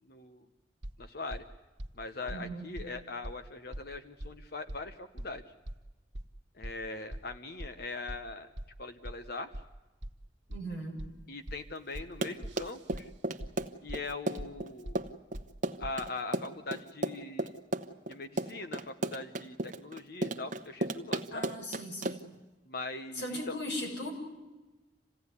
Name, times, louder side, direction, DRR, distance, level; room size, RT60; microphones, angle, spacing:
voice 1, 0.0-0.5 1.0-1.4 1.9-5.4 6.5-8.5 8.8-9.5 11.3-13.1 13.8-15.0 15.8-17.6 18.1-21.4 22.7-23.6, left 3 dB, 60° left, 8 dB, 1.0 m, -41 dB
sound 1, 0.8-0.9 1.3-1.4 1.8-1.9 2.3-2.4 2.8-2.9 3.2-3.3 3.7-3.8 4.2-4.3 4.7-4.8 5.2-5.3 5.7-5.8 6.1-6.2 6.6-6.7 7.1-7.2 7.6-7.7 8.1-8.2 8.6-8.7 9.0-9.1 9.5-9.6 10.0-10.1 10.5-10.6 11.0-11.1 11.5-11.6 11.9-12.0 12.4-13.0 13.4-13.5 13.9-14.0 14.4-14.5 14.8-15.0 15.3-15.4 15.8-15.9, right 1 dB, 70° right, 1.4 m, -40 dB
voice 2, 2.3-2.7 10.5-11.0 21.3-22.2 23.1-24.1, equal, 75° left, 1 dB, 6.7 m, -38 dB
Run, 12.0-22.4, right 2 dB, 45° right, 1.0 m, -34 dB
27.5 x 16.5 x 9.7 m, 1.1 s
head